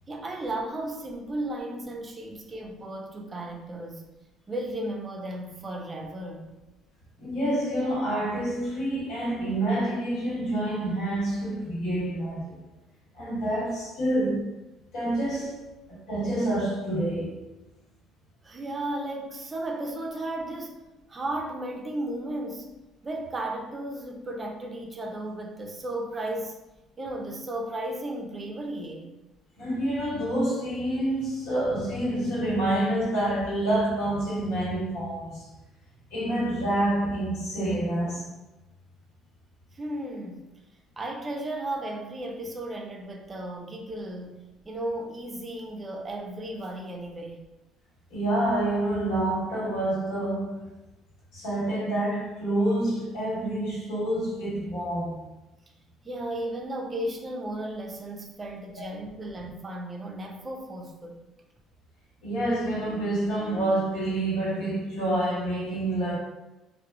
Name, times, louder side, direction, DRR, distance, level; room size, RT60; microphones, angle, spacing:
voice 1, 0.1-4.0 4.5-6.6 18.4-20.8 21.1-22.8 23.0-26.6 27.0-29.1 39.7-40.5 41.0-47.4 56.0-61.2, right 1 dB, 25° right, 0.4 m, -34 dB
voice 2, 7.2-12.6 13.1-14.5 14.9-17.5 29.6-35.5 36.1-38.3 48.1-50.6 51.3-55.3 58.8-58.9 62.2-66.2, right 1 dB, 80° left, 1.2 m, -27 dB
2.8 x 2.0 x 2.2 m
cardioid pair, 95°, 0 cm